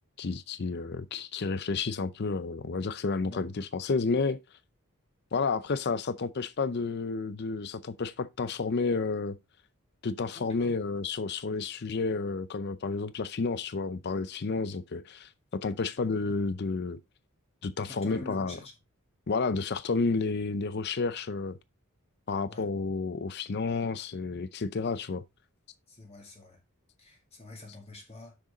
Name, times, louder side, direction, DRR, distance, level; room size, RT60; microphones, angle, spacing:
voice 1, 0.2-4.4 5.3-9.4 10.0-17.0 17.6-18.6 19.3-21.6 22.3-25.2, left 4 dB, 50° left, 0.5 m, -31 dB
voice 2, 3.2-3.5 10.3-10.9 15.6-15.8 17.8-18.7 22.5-22.7 25.9-26.6 27.0-28.4, left 2 dB, 30° left, 2.2 m, -47 dB
6.7 x 6.5 x 3.8 m
head